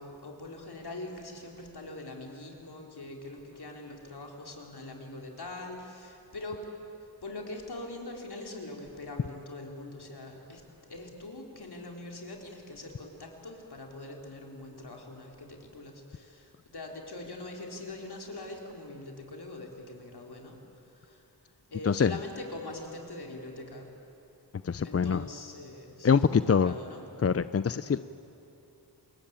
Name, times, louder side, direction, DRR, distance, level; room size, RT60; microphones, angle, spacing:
voice 1, 0.0-6.7 7.2-21.3 21.7-23.9 24.8-27.1 27.7-28.0, left 2 dB, 65° left, 1 dB, 4.2 m, -43 dB
voice 2, 24.6-25.2 26.0-26.7 27.2-28.0, left 6 dB, 35° left, 14 dB, 0.5 m, -24 dB
28.5 x 22.0 x 8.9 m, 2.8 s
cardioid pair, 55°, 41 cm